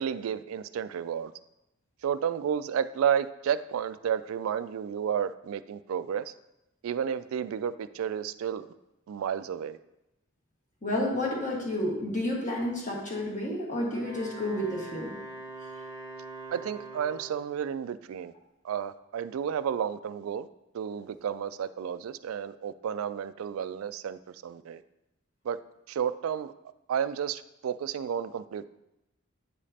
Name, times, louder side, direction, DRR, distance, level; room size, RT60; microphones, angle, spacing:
voice 1, 0.0-1.3 2.0-6.3 6.8-8.7 9.1-9.8 16.5-18.3 18.6-20.5 20.7-24.8 25.4-25.6 25.9-26.5 26.9-28.7, right 8 dB, 75° right, 14 dB, 0.3 m, -31 dB
voice 2, 10.8-15.1, left 1 dB, 35° left, -3 dB, 1.5 m, -30 dB
Wind instrument woodwind instrument, 13.8-17.6, right 2 dB, 15° left, 1.8 m, -43 dB
8.6 x 5.1 x 2.8 m, 0.91 s
head